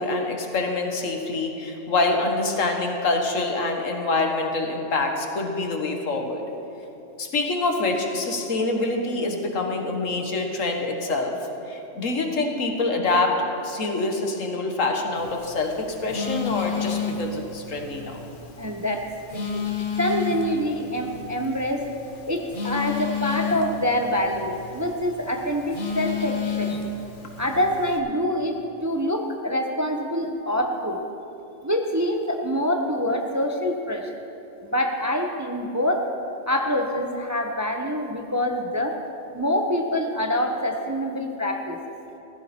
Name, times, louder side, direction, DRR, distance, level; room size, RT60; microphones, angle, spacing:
voice 1, 0.0-6.4 7.2-11.3 11.7-18.2, left 3 dB, 80° left, 3 dB, 1.8 m, -26 dB
Telephone, 15.2-28.0, left 5 dB, 45° left, 1.3 m, -32 dB
voice 2, 18.6-19.0 19.3-19.7 20.0-21.9 22.3-26.9 27.4-31.0 31.6-34.1 34.6-36.0 36.5-39.0 39.3-41.8, left 1 dB, 15° right, 3 dB, 0.7 m, -25 dB
15.5 x 14.5 x 4.3 m, 2.9 s
omnidirectional pair, 1.3 m